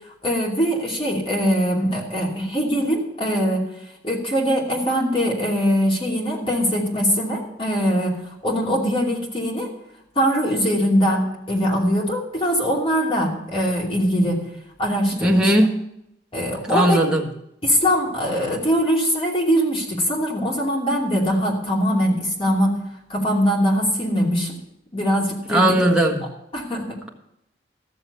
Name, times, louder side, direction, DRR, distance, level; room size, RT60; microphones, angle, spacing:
voice 1, 0.2-3.6 4.0-9.7 10.2-14.4 14.8-15.5 16.3-17.0 17.6-22.8 23.1-24.6 24.9-25.8 26.5-27.1, equal, 30° left, -2 dB, 2.7 m, -22 dB
voice 2, 15.2-15.7 16.7-17.2 25.5-26.3, right 1 dB, 5° right, -1 dB, 1.4 m, -18 dB
14.0 x 7.0 x 6.9 m, 0.80 s
head